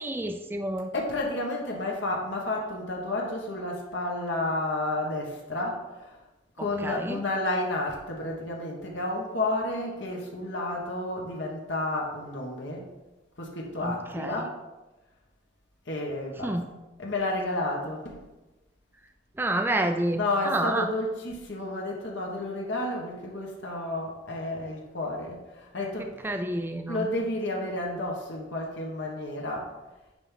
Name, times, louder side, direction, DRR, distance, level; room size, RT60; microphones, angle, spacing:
voice 1, 0.0-0.9 6.6-7.2 13.8-14.4 16.4-16.6 19.4-20.9 26.2-27.1, right 1 dB, 10° right, 5 dB, 0.4 m, -29 dB
voice 2, 0.9-6.2 6.6-12.9 13.4-14.6 15.9-16.6 17.0-18.2 20.1-26.4 26.9-29.7, left 2 dB, 70° left, -1 dB, 1.3 m, -31 dB
9.5 x 3.5 x 5.7 m, 1.1 s
head